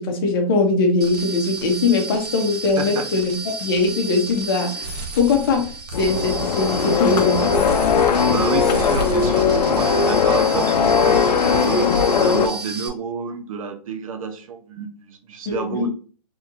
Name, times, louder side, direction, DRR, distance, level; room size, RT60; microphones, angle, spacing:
voice 1, 0.0-5.7 6.0-7.7 15.5-15.9, left 3 dB, 35° left, 3 dB, 0.8 m, -21 dB
sound 1, 1.0-12.9, right 3 dB, 80° right, 1.0 m, -32 dB
voice 2, 2.8-3.1 8.3-15.9, right 6 dB, 55° right, 6 dB, 0.6 m, -29 dB
sound 2, 5.9-12.5, left 6 dB, 85° left, 0.5 m, -19 dB
4.1 x 2.9 x 2.5 m, 0.40 s
hypercardioid pair, 165°, 20 cm